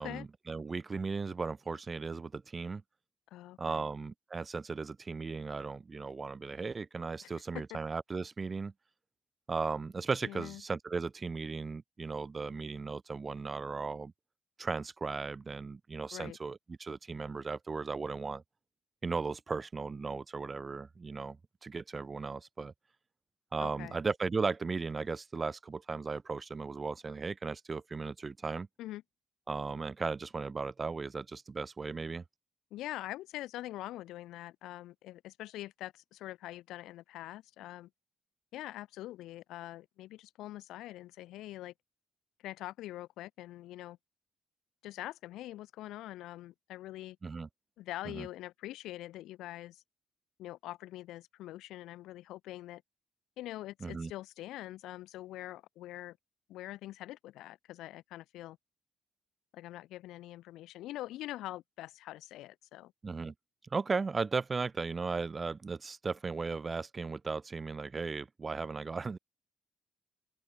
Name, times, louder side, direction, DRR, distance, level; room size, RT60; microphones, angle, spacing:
voice 1, 0.0-2.8 3.6-8.7 9.5-14.1 14.6-18.4 19.0-22.7 23.5-28.7 29.5-32.2 47.2-47.5 48.1-48.3 53.8-54.1 63.0-63.3 63.7-69.2, right 4 dB, 30° right, 0.5 m, -36 dB
voice 2, 3.3-3.9 7.2-7.4 10.2-10.6 16.1-16.4 23.6-24.0 28.8-29.0 32.7-37.9 38.5-41.7 42.4-44.0 44.8-47.2 47.8-49.8 50.4-52.8 53.4-56.2 56.5-58.6 59.5-62.9, left 15 dB, 90° left, 1.7 m, -44 dB
open air
cardioid pair, 90°, 0 cm